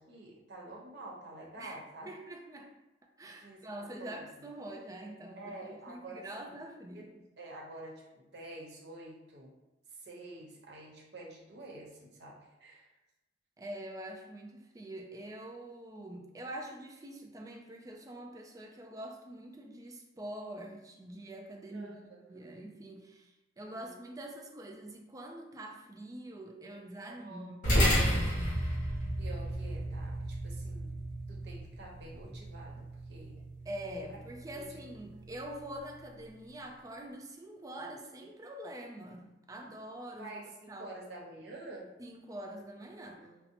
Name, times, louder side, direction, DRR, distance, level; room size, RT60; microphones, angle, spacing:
voice 1, 0.0-2.1 3.4-4.2 5.4-6.6 6.9-9.5 9.9-12.9 21.7-22.5 23.7-23.9 27.1-27.6 28.0-28.4 29.2-30.9 31.3-33.4 34.6-34.8 40.2-41.9 43.1-43.5, right 2 dB, 70° right, -3 dB, 0.9 m, -48 dB
voice 2, 2.0-2.7 3.2-7.1 13.6-27.6 27.8-28.3 33.6-40.3 40.7-40.9 42.0-43.3, right 1 dB, 20° right, 1 dB, 0.4 m, -45 dB
sound 1, 27.6-36.3, equal, 45° left, 1.3 m, -33 dB
5.4 x 2.0 x 2.8 m, 0.98 s
head